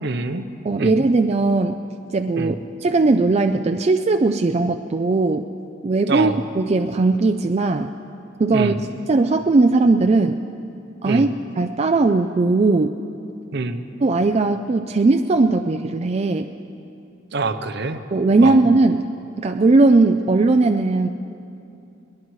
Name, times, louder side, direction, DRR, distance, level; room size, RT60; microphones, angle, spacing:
voice 1, 0.0-0.5 0.8-0.9 2.4-2.6 6.1-6.4 8.5-8.7 11.0-11.3 13.5-13.9 17.3-18.0 18.4-18.6, right 3 dB, 60° right, 9 dB, 0.8 m, -25 dB
voice 2, 0.6-1.7 2.1-5.5 5.8-7.9 8.4-8.7 9.1-10.4 11.0-11.3 11.6-12.9 14.0-16.5 18.1-19.1 19.4-21.1, right 3 dB, 35° right, 5 dB, 0.4 m, -18 dB
21.5 x 19.5 x 3.2 m, 2.7 s
head